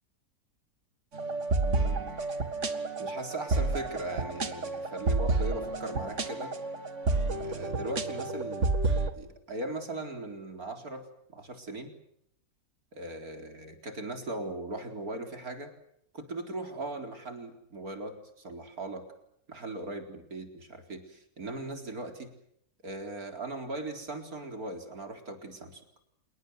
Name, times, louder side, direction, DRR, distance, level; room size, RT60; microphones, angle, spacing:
sound 1, 1.1-9.1, right 3 dB, 50° right, 2.2 m, -30 dB
voice 1, 1.6-2.2 3.0-6.6 7.4-8.7 9.2-11.9 12.9-15.7 16.1-19.0 19.5-22.3 22.8-25.8, right 2 dB, 70° right, 5 dB, 4.6 m, -39 dB
27.5 x 22.0 x 8.0 m, 0.75 s
omnidirectional pair, 1.6 m